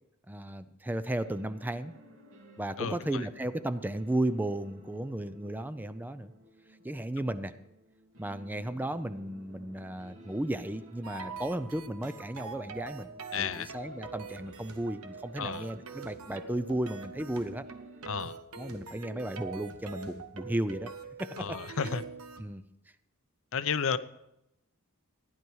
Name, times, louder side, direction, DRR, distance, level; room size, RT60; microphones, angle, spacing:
voice 1, 0.3-1.9 2.6-6.3 6.8-7.5 8.2-13.1 13.4-17.7 18.6-20.9 21.2-22.0 22.4-22.6, right 1 dB, 10° right, 12 dB, 0.4 m, -34 dB
sound 1, 1.2-18.3, right 1 dB, 70° right, 2.3 m, -55 dB
sound 2, 11.0-22.4, right 4 dB, 85° right, 1.1 m, -44 dB
voice 2, 13.3-13.7 15.4-15.6 18.1-18.3 21.4-22.0 23.5-24.0, left 6 dB, 65° left, 13 dB, 0.6 m, -31 dB
15.0 x 10.5 x 4.7 m, 0.86 s
head